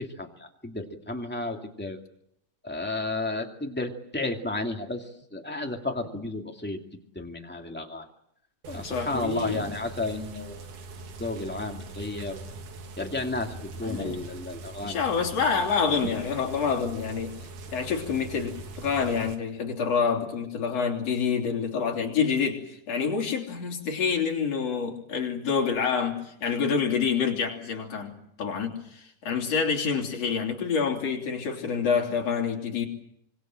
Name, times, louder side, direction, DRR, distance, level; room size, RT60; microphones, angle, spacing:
voice 1, 0.0-2.0 2.6-5.0 5.3-6.8 7.1-8.1 8.7-10.6 11.2-12.4 13.0-15.0 15.5-15.6, left 2 dB, 5° left, 2 dB, 1.5 m, -32 dB
sound 1, 8.6-19.4, right 3 dB, 65° right, 3.2 m, -41 dB
voice 2, 8.8-9.8 13.8-14.2 14.8-17.4 17.7-28.1 28.4-32.9, left 6 dB, 45° left, 1 dB, 4.2 m, -27 dB
25.5 x 23.5 x 7.6 m, 0.75 s
omnidirectional pair, 4.1 m